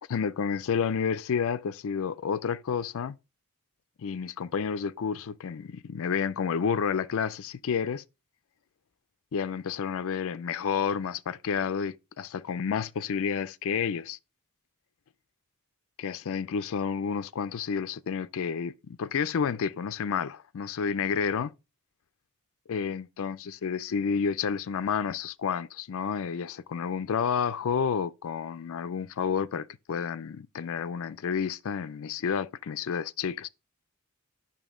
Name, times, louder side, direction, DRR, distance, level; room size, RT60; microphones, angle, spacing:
voice 1, 0.1-3.2 4.0-8.0 9.3-14.2 16.0-21.5 22.7-33.5, left 6 dB, 65° left, 0.4 m, -30 dB
9.1 x 6.0 x 3.7 m
head